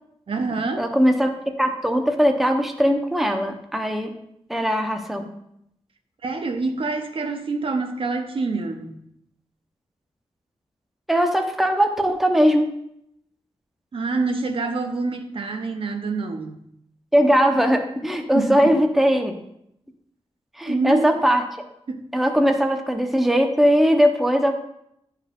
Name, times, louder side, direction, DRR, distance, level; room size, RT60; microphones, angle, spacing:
voice 1, 0.3-0.9 6.2-9.0 13.9-16.6 18.3-18.8 20.6-21.2 21.9-22.1, right 3 dB, 60° right, 5 dB, 0.8 m, -26 dB
voice 2, 0.8-4.1 4.5-5.3 11.1-12.8 17.1-19.4 20.6-21.4 22.1-24.5, equal, ahead, 4 dB, 0.7 m, -20 dB
10.0 x 4.7 x 3.5 m, 0.76 s
wide cardioid pair, 125°, 11 cm